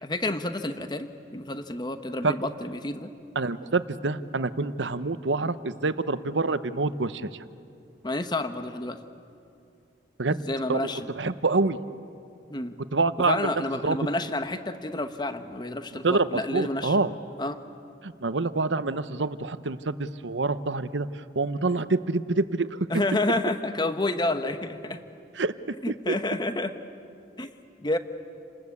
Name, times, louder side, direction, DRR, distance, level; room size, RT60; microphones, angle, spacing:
voice 1, 0.0-3.1 8.0-9.0 10.3-11.1 12.5-12.7 13.2-17.0 17.4-17.6 22.9-25.0 25.8-26.7 27.4-27.5 27.8-28.0, left 2 dB, 25° left, 9 dB, 1.1 m, -29 dB
voice 2, 3.4-7.3 10.2-10.4 10.7-10.8 11.1-11.8 12.9-13.5 13.8-14.0 16.0-17.1 18.0-21.1 21.4-22.8 25.4-25.5 26.1-26.2, right 3 dB, 85° right, 13 dB, 0.9 m, -26 dB
29.0 x 20.5 x 8.5 m, 2.6 s
head